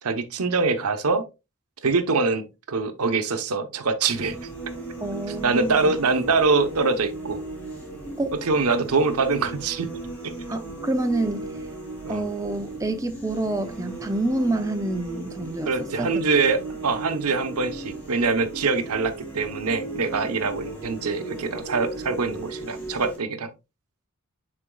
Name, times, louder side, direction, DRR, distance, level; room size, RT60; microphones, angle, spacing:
voice 1, 0.0-1.2 1.8-4.5 5.4-7.4 8.4-9.9 12.0-12.2 15.6-23.5, right 4 dB, 85° right, 0.9 m, -24 dB
sound 1, 4.1-23.2, right 2 dB, 5° left, 2.6 m, -36 dB
voice 2, 5.0-5.9 8.2-8.3 10.5-11.6 12.1-16.2, right 2 dB, 15° right, 0.5 m, -28 dB
9.9 x 4.3 x 2.3 m
head